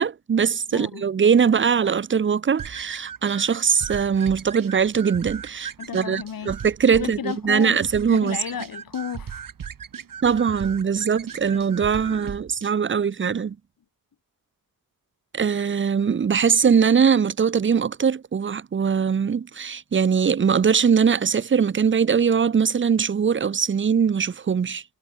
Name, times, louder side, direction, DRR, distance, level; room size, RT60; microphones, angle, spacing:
voice 1, 0.0-8.4 10.2-13.6 15.3-24.8, right 6 dB, 35° right, 0.7 m, -21 dB
voice 2, 0.7-1.0 5.8-9.4 11.5-11.6 12.0-12.3, left 8 dB, 75° left, 3.8 m, -34 dB
sound 1, 2.6-12.7, right 7 dB, 70° right, 2.9 m, -38 dB
wide cardioid pair, 140°, 35 cm